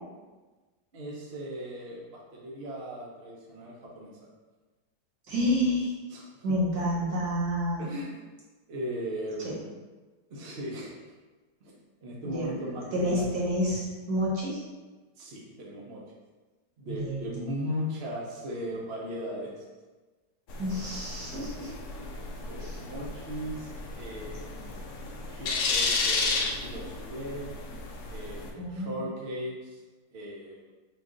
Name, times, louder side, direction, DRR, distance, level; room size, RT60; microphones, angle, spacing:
voice 1, 0.9-4.1 5.6-5.7 6.1-6.6 7.8-8.2 8.7-9.6 10.3-10.9 11.6-11.7 12.0-13.2 15.2-16.0 16.8-19.7 21.6-22.1 22.5-24.8 25.2-27.6 28.1-29.8 30.1-30.7, equal, 50° right, -4 dB, 0.7 m, -38 dB
voice 2, 5.3-5.9 6.4-7.8 9.4-9.5 12.2-12.5 12.9-14.6 16.9-17.5 20.6-21.7 22.6-22.8 28.6-29.0, equal, 70° right, -6 dB, 1.6 m, -29 dB
sound 1, 20.5-28.5, left 3 dB, 70° left, 0.7 m, -33 dB
3.8 x 2.4 x 3.7 m, 1.3 s
omnidirectional pair, 1.8 m